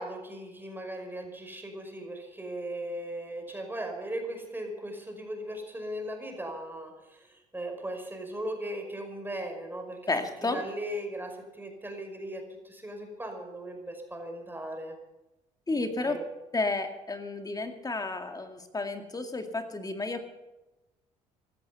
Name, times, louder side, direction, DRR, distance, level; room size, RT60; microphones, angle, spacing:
voice 1, 0.0-10.0 10.5-15.0 16.0-16.2, right 1 dB, 15° right, 3 dB, 5.4 m, -38 dB
voice 2, 10.1-10.6 15.7-16.2 16.5-20.2, left 3 dB, 25° left, 6 dB, 2.3 m, -31 dB
16.5 x 12.5 x 7.0 m, 1.0 s
supercardioid pair, 70°, 15 cm